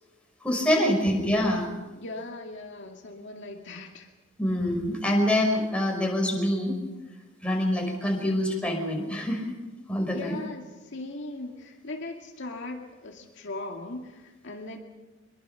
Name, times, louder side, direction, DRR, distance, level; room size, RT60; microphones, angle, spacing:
voice 1, 0.4-1.7 4.4-6.8 7.4-9.5 9.9-10.4, left 1 dB, 5° left, 0 dB, 5.6 m, -25 dB
voice 2, 2.0-4.1 10.1-14.8, left 2 dB, 60° left, 1 dB, 2.3 m, -39 dB
25.0 x 23.0 x 5.8 m, 1.1 s
head